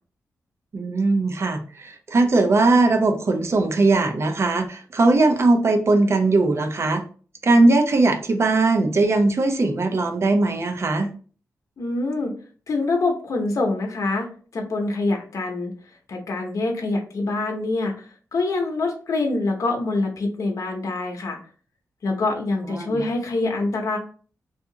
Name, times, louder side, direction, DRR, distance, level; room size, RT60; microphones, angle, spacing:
voice 1, 0.7-7.0 7.4-11.1 22.7-23.0, right 2 dB, 45° right, 5 dB, 0.6 m, -19 dB
voice 2, 11.8-12.3 12.7-15.7 16.1-17.9 18.3-21.4 22.0-24.0, left 2 dB, 60° left, 1 dB, 0.7 m, -25 dB
2.7 x 2.4 x 3.7 m, 0.41 s
cardioid pair, 85°, 6 cm